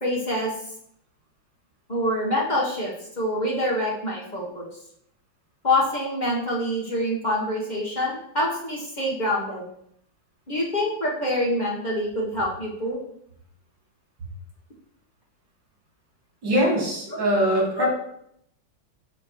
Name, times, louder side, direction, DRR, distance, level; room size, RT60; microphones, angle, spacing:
voice 1, 0.0-0.5 1.9-4.7 5.6-9.6 10.5-13.0 17.1-17.2 17.8-17.9, left 1 dB, 30° left, -4 dB, 0.9 m, -26 dB
voice 2, 16.4-17.9, equal, 60° right, -4 dB, 2.5 m, -22 dB
6.2 x 5.2 x 3.1 m, 0.72 s
omnidirectional pair, 2.2 m